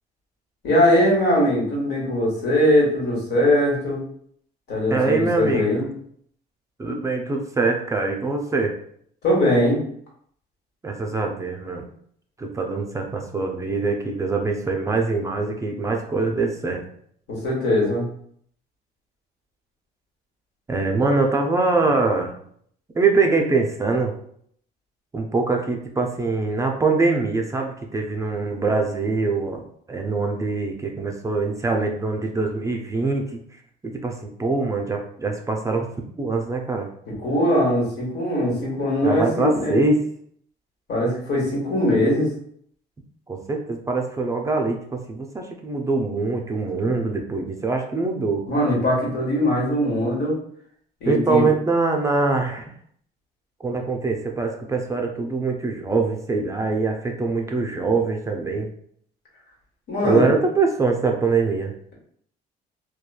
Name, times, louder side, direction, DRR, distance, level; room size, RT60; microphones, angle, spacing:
voice 1, 0.6-4.0 4.7-5.9 9.2-9.8 17.3-18.1 37.1-39.8 40.9-42.3 48.5-50.4 51.0-51.4 59.9-60.3, left 1 dB, 80° left, -3 dB, 1.3 m, -21 dB
voice 2, 4.9-5.8 6.8-8.8 10.8-11.9 12.4-16.8 20.7-22.3 22.9-24.1 25.1-33.4 33.8-35.9 36.2-36.9 39.0-40.0 43.3-48.4 51.0-52.6 53.6-58.7 60.0-61.7, right 3 dB, 20° right, 2 dB, 0.4 m, -23 dB
3.0 x 2.3 x 2.2 m, 0.64 s
cardioid pair, 110°, 17 cm